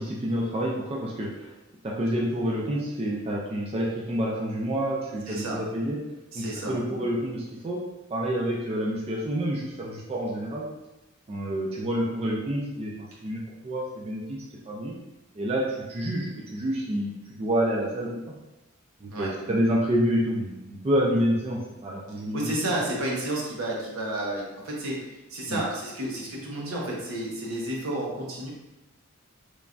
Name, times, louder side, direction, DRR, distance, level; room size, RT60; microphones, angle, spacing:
voice 1, 0.0-1.5 1.8-6.0 6.3-7.8 8.1-10.7 11.3-12.9 13.2-14.9 15.3-18.2 19.0-22.7 25.5-25.6, equal, 30° right, -4 dB, 0.3 m, -28 dB
voice 2, 5.3-5.6 6.3-6.7 19.1-19.3 22.3-25.0 25.3-28.5, right 1 dB, 75° right, -3 dB, 0.7 m, -31 dB
3.1 x 2.2 x 2.5 m, 1.0 s
head